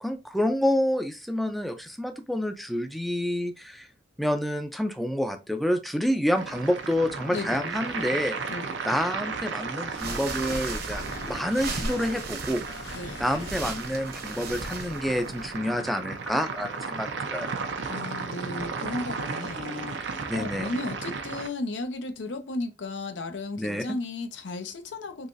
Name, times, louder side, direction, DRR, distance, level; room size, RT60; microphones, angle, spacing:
voice 1, 0.0-3.9 4.2-8.3 8.8-12.6 13.2-17.6 20.3-20.7 23.6-23.8, equal, ahead, 0.4 m, -28 dB
spectral bubbles, 6.4-21.5, right 4 dB, 90° right, 0.6 m, -35 dB
voice 2, 7.3-7.7 8.5-8.8 12.9-13.2 17.9-25.3, left 2 dB, 90° left, 0.6 m, -35 dB
sound 1, 9.1-13.5, left 1 dB, 70° left, 1.2 m, -45 dB
sound 2, 9.9-15.6, right 3 dB, 55° right, 0.9 m, -37 dB
3.9 x 2.9 x 2.5 m
head